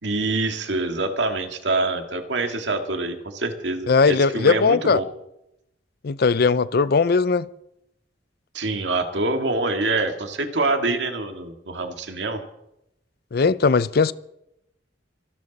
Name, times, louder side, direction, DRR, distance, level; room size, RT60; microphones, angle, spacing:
voice 1, 0.0-5.1 8.5-12.4, right 2 dB, 90° right, 2.0 m, -25 dB
voice 2, 3.9-5.0 6.0-7.5 13.3-14.1, left 4 dB, 60° left, 0.5 m, -19 dB
25.0 x 12.0 x 4.1 m
head